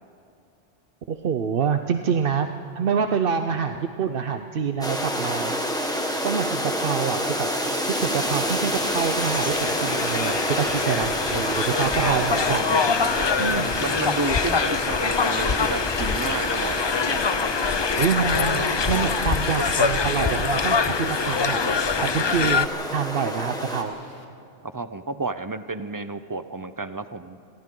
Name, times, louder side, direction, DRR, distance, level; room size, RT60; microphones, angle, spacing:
voice 1, 1.1-2.5 2.8-7.5 7.8-12.6 13.4-13.8 18.0-24.0, right 6 dB, 60° right, 7 dB, 0.9 m, -26 dB
sound 1, 4.8-23.8, equal, 5° left, 1.6 m, -29 dB
sound 2, 8.0-22.7, left 5 dB, 40° left, 0.4 m, -25 dB
sound 3, 8.9-24.2, left 2 dB, 65° left, 1.9 m, -45 dB
voice 2, 12.0-12.4 13.2-13.5 13.8-16.9 24.6-27.4, right 3 dB, 25° right, 11 dB, 0.5 m, -31 dB
30.0 x 22.5 x 3.8 m, 2.5 s
omnidirectional pair, 1.1 m